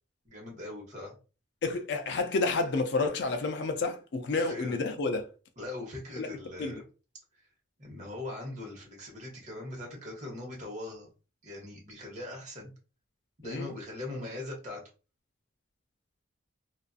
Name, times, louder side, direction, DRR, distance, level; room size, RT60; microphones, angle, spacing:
voice 1, 0.2-1.1 4.3-4.8 5.6-6.8 7.8-11.1 11.4-12.7 13.4-14.8, left 2 dB, 40° right, 1.0 m, -40 dB
voice 2, 1.6-5.3 6.2-6.3 6.6-6.8 13.4-13.7, left 3 dB, 65° left, 0.4 m, -30 dB
2.6 x 2.4 x 2.3 m
head